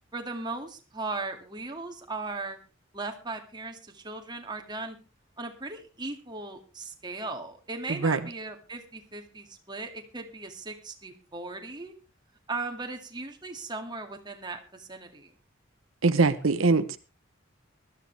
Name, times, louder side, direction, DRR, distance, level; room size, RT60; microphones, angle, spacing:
voice 1, 0.1-2.6 2.9-5.0 5.4-11.9 12.5-15.3, right 3 dB, 20° right, 4 dB, 2.2 m, -37 dB
voice 2, 7.9-8.2 16.0-17.0, right 3 dB, 85° right, 11 dB, 0.9 m, -22 dB
20.0 x 13.0 x 3.4 m, 0.31 s
head